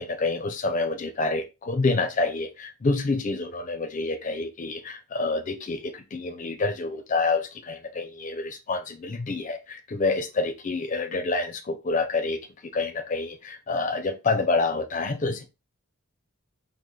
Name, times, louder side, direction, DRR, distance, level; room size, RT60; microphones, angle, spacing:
voice 1, 0.0-15.5, left 3 dB, 35° left, 0.4 m, -28 dB
3.7 x 2.5 x 3.2 m
head